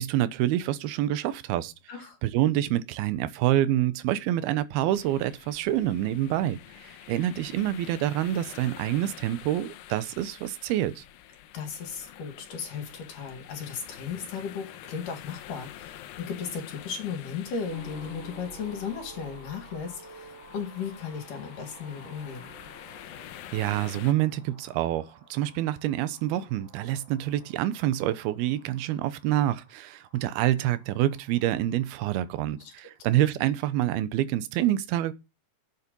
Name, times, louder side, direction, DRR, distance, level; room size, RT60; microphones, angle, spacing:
voice 1, 0.0-1.7 2.2-11.0 23.5-35.1, right 13 dB, 80° right, 2.7 m, -27 dB
sound 1, 4.9-24.1, left 12 dB, 75° left, 2.4 m, -47 dB
voice 2, 11.5-22.5 32.6-32.9, left 6 dB, 60° left, 3.4 m, -36 dB
sound 2, 17.7-32.8, right 2 dB, 15° right, 4.8 m, -51 dB
10.5 x 8.7 x 5.4 m
omnidirectional pair, 4.6 m